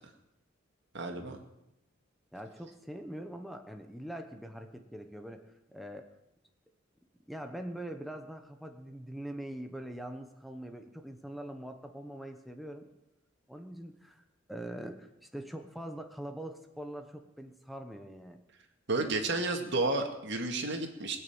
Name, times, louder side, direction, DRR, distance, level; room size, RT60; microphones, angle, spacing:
voice 1, 0.9-1.4 18.9-21.2, right 2 dB, 65° right, 4 dB, 2.1 m, -31 dB
voice 2, 2.3-5.4 5.7-6.1 7.3-12.9 13.5-14.2 14.5-18.4, right 1 dB, ahead, 5 dB, 1.0 m, -43 dB
20.5 x 7.0 x 8.9 m, 0.89 s
head